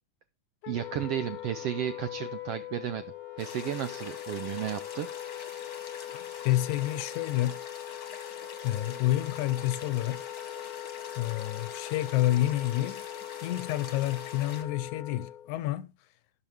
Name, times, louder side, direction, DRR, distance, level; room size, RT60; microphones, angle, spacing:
Wind instrument woodwind instrument, 0.6-15.5, left 13 dB, 65° left, 1.3 m, -41 dB
voice 1, 0.7-3.0 3.4-5.1, right 11 dB, 80° right, 1.3 m, -33 dB
Bowed string instrument, 1.3-15.2, right 5 dB, 45° right, 3.5 m, -59 dB
sound 1, 3.4-14.6, left 5 dB, 40° left, 1.4 m, -46 dB
voice 2, 6.1-7.6 8.6-10.2 11.2-13.0 13.4-15.9, left 15 dB, 80° left, 2.1 m, -29 dB
12.0 x 10.0 x 3.3 m
omnidirectional pair, 3.4 m